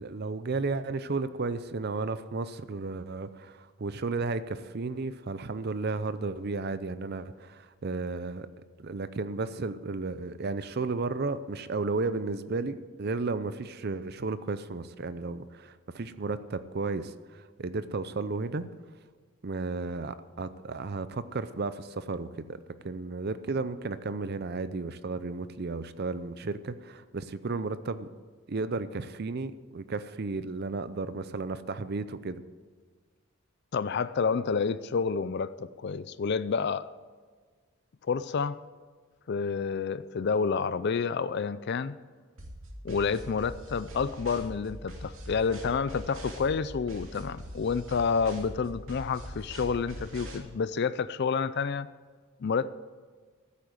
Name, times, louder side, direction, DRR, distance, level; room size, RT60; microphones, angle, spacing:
voice 1, 0.0-8.5 8.8-18.7 19.4-22.6 22.8-28.1 28.5-32.4, right 3 dB, 45° right, 13 dB, 0.5 m, -33 dB
voice 2, 33.7-36.9 38.1-38.6 39.3-41.9 42.8-51.9 52.4-52.7, left 5 dB, 50° left, 15 dB, 0.4 m, -29 dB
sound 1, 42.4-50.4, equal, 65° right, 2.7 m, -43 dB
14.5 x 8.5 x 7.9 m, 1.5 s
head